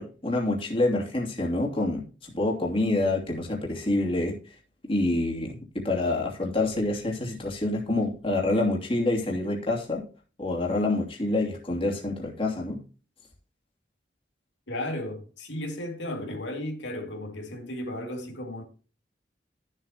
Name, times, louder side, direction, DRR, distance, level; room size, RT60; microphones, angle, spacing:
voice 1, 0.0-4.4 4.9-10.0 10.4-12.8, left 2 dB, 30° left, 2.8 m, -27 dB
voice 2, 14.7-18.6, left 1 dB, 80° left, 2.4 m, -34 dB
13.0 x 7.6 x 2.9 m
head